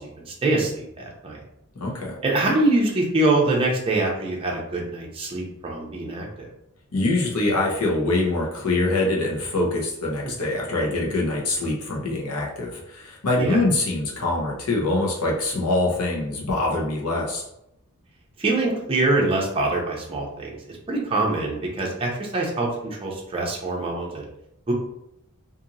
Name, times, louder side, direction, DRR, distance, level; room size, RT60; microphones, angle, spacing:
voice 1, 0.0-1.4 2.2-6.5 13.4-13.6 18.4-24.3 24.7-24.8, right 2 dB, 25° right, -2 dB, 0.5 m, -24 dB
voice 2, 1.8-2.2 6.9-17.4, left 2 dB, 80° left, -2 dB, 0.8 m, -24 dB
2.8 x 2.6 x 2.5 m, 0.80 s
head